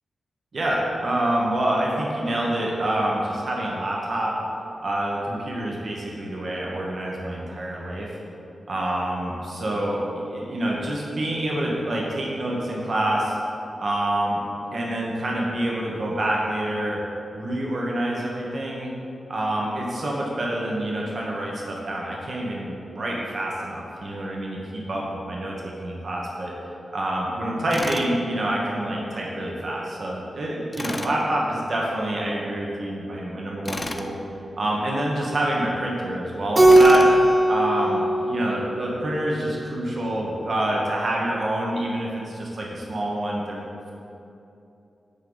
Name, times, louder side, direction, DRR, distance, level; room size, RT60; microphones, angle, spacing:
voice 1, 0.5-4.3 4.8-8.1 8.7-13.3 13.8-14.4 14.7-17.0 17.3-18.9 19.3-26.5 26.9-34.1 34.6-37.0 37.5-43.6, right 1 dB, 60° right, -3 dB, 1.0 m, -27 dB
Tools, 27.7-28.1 30.7-31.2 33.7-34.1 36.7-37.1, left 2 dB, 30° left, 0.5 m, -31 dB
Keyboard (musical), 36.5-39.2, right 1 dB, 35° right, 1.3 m, -18 dB
8.8 x 3.8 x 3.9 m, 2.8 s
cardioid pair, 55°, 0 cm